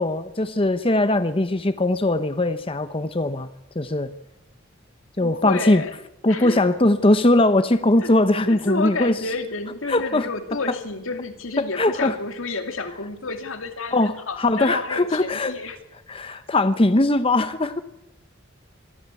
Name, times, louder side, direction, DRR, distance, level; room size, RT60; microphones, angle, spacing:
voice 1, 0.0-3.5 3.7-4.1 5.2-5.8 6.2-9.2 9.9-10.3 11.6-12.2 13.9-15.6 16.1-17.8, left 2 dB, 25° left, 11 dB, 0.8 m, -20 dB
voice 2, 5.2-5.9 6.3-6.6 8.0-8.1 8.5-15.8, left 3 dB, 85° left, 6 dB, 2.6 m, -30 dB
24.0 x 14.0 x 8.3 m, 0.85 s
head